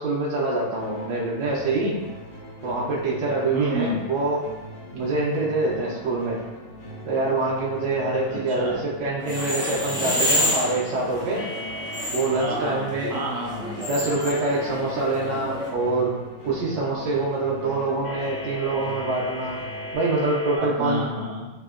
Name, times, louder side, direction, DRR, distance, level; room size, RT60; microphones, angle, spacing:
voice 1, 0.0-2.0 2.6-4.4 4.9-6.4 7.0-11.5 12.1-13.1 13.9-16.2 16.4-19.6 19.9-21.1, right 2 dB, 90° right, -6 dB, 1.3 m, -25 dB
sound 1, 0.8-20.0, equal, 85° left, 1.3 m, -41 dB
voice 2, 3.5-4.0 8.3-8.8 12.2-13.9 20.5-21.5, equal, 70° right, -3 dB, 1.0 m, -30 dB
sound 2, 9.2-15.7, left 1 dB, 5° right, 0.3 m, -29 dB
sound 3, 11.4-15.0 18.0-20.6, left 1 dB, 70° left, 0.7 m, -38 dB
3.6 x 2.0 x 2.3 m, 1.1 s
omnidirectional pair, 1.8 m